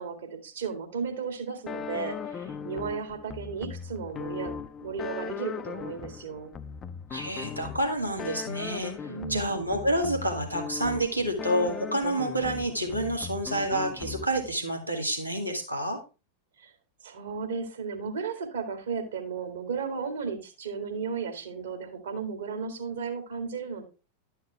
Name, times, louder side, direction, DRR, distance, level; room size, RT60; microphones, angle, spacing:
voice 1, 0.0-4.5 4.8-6.5 9.1-9.5 16.6-16.7 17.0-23.8, right 5 dB, 65° right, 5 dB, 2.0 m, -34 dB
sound 1, 1.7-14.6, left 6 dB, 25° left, 0.5 m, -39 dB
voice 2, 7.1-16.0, right 1 dB, 90° right, 0 dB, 1.9 m, -29 dB
11.5 x 5.8 x 3.3 m, 0.30 s
figure-of-eight pair, 90°, 0 cm